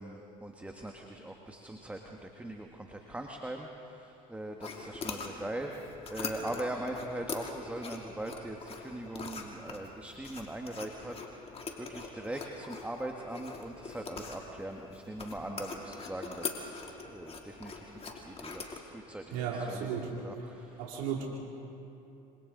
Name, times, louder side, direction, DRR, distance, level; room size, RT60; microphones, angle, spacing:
voice 1, 0.0-11.2 11.8-20.8, right 1 dB, 5° right, 2 dB, 1.6 m, -41 dB
sound 1, 4.6-18.8, left 4 dB, 35° left, 3.1 m, -43 dB
voice 2, 19.3-20.1 20.8-21.3, right 7 dB, 75° right, -2 dB, 2.8 m, -34 dB
27.0 x 26.5 x 4.0 m, 2.8 s
hypercardioid pair, 80°, 18 cm